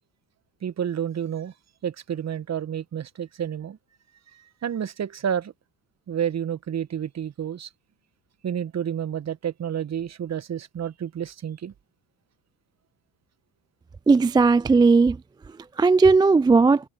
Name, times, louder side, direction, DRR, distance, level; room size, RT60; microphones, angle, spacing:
voice 1, 0.6-1.5 1.8-3.8 4.6-5.5 6.1-7.7 8.4-11.7, right 9 dB, 40° right, 1.5 m, -30 dB
voice 2, 14.1-15.2 15.8-16.8, right 4 dB, 10° right, 0.4 m, -16 dB
hypercardioid pair, 60°, 42 cm